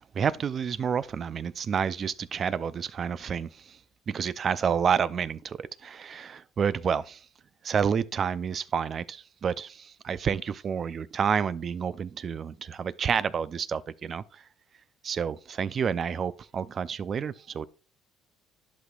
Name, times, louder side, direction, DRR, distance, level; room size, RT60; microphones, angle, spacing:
voice 1, 0.1-3.8 4.1-7.2 7.6-14.4 15.0-17.7, right 7 dB, 45° right, 0.5 m, -29 dB
11.0 x 6.1 x 2.4 m
supercardioid pair, 90°, 0 cm